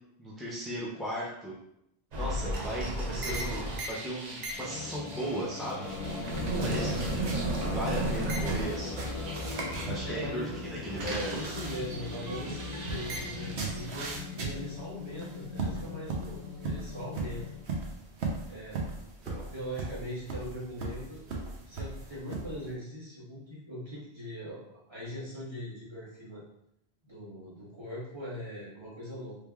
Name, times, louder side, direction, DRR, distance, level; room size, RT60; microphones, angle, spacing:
voice 1, 0.2-1.5 2.2-6.2 6.6-7.2 7.6-9.1 9.8-10.5 10.8-11.3 19.3-19.5, right 1 dB, ahead, -7 dB, 0.4 m, -36 dB
sound 1, 2.1-10.1 10.4-14.2, right 2 dB, 50° right, 0.6 m, -35 dB
sound 2, 4.5-17.7, left 4 dB, 35° left, 0.7 m, -39 dB
sound 3, 5.8-22.7, right 3 dB, 85° right, 0.9 m, -40 dB
voice 2, 6.5-6.9 10.0-10.5 11.3-17.4 18.4-18.8 19.5-24.6 24.9-26.4 27.1-29.4, equal, 25° right, -10 dB, 1.4 m, -41 dB
3.3 x 3.2 x 2.3 m, 0.77 s
omnidirectional pair, 1.1 m